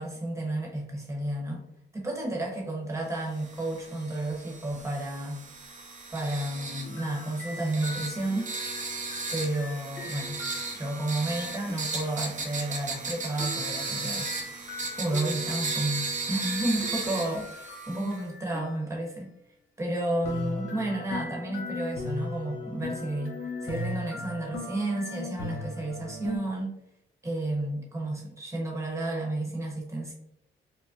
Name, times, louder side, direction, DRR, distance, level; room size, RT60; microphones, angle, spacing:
voice 1, 0.0-1.6 1.9-5.4 6.1-8.5 8.8-10.4 10.7-14.3 14.6-19.3 19.8-26.8 27.2-30.1, right 1 dB, 15° right, -2 dB, 1.0 m, -32 dB
sound 1, 3.3-18.2, right 3 dB, 35° right, 0.6 m, -36 dB
sound 2, 6.8-12.1 13.4-19.2 20.2-26.4, left 2 dB, 80° left, 1.0 m, -39 dB
5.0 x 2.1 x 2.5 m, 0.80 s
cardioid pair, 120°, 21 cm